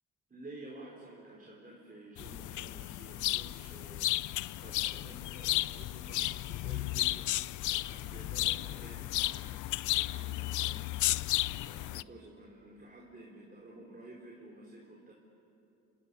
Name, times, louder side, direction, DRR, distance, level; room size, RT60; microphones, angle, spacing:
voice 1, 0.3-7.3 7.8-9.5 9.8-11.2 11.6-15.1, right 2 dB, 30° right, -3 dB, 4.6 m, -51 dB
sound 1, 2.2-12.0, left 16 dB, 75° left, 0.5 m, -33 dB
29.5 x 28.0 x 7.1 m, 2.9 s
cardioid pair, 90°, 30 cm